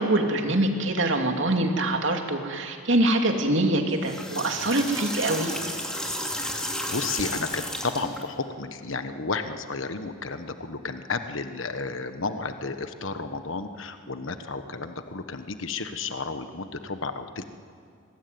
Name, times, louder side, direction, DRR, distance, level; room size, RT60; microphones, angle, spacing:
voice 1, 0.0-5.5, right 1 dB, 65° right, 3 dB, 2.7 m, -24 dB
sound 1, 3.9-8.2, equal, 5° left, 2.5 m, -32 dB
voice 2, 6.3-17.4, left 4 dB, 70° left, 9 dB, 1.3 m, -32 dB
23.5 x 20.0 x 9.5 m, 2.2 s
head